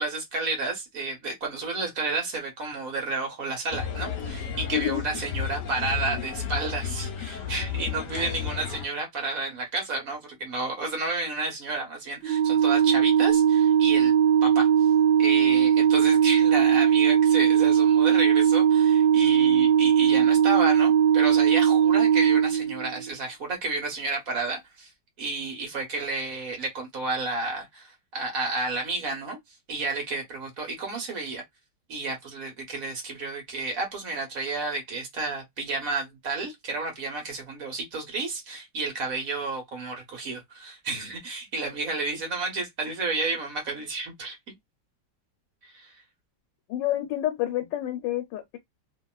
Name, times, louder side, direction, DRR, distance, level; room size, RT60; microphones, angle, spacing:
voice 1, 0.0-14.1 14.4-14.7 15.2-24.9 25.2-29.4 29.7-31.4 31.9-44.6 45.6-45.9, right 3 dB, 55° right, 1.5 m, -31 dB
sound 1, 3.7-8.9, left 8 dB, 60° left, 0.9 m, -33 dB
Organ, 12.2-23.1, right 8 dB, 75° right, 1.1 m, -20 dB
voice 2, 46.7-48.6, left 13 dB, 80° left, 1.2 m, -28 dB
2.9 x 2.8 x 2.3 m
omnidirectional pair, 1.9 m